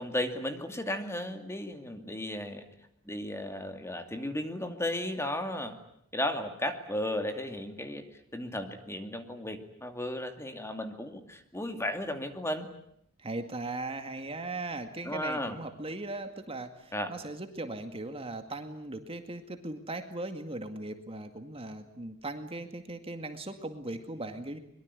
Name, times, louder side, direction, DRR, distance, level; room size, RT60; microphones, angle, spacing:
voice 1, 0.0-2.6 3.0-5.8 6.1-8.0 8.3-12.7 15.0-15.6 16.9-17.1, left 1 dB, 15° left, 6 dB, 2.5 m, -34 dB
voice 2, 13.2-24.6, right 2 dB, 25° right, 7 dB, 2.1 m, -38 dB
23.5 x 23.0 x 9.7 m, 0.72 s
head